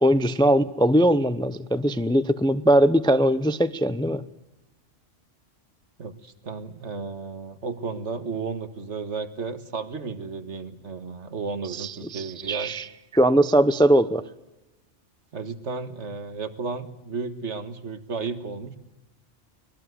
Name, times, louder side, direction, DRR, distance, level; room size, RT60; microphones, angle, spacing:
voice 1, 0.0-4.2 11.8-12.8 13.1-14.2, right 1 dB, 5° left, 13 dB, 0.5 m, -20 dB
voice 2, 6.0-12.7 15.3-18.8, right 4 dB, 65° right, 10 dB, 1.8 m, -33 dB
24.5 x 19.5 x 8.0 m, 0.97 s
omnidirectional pair, 1.3 m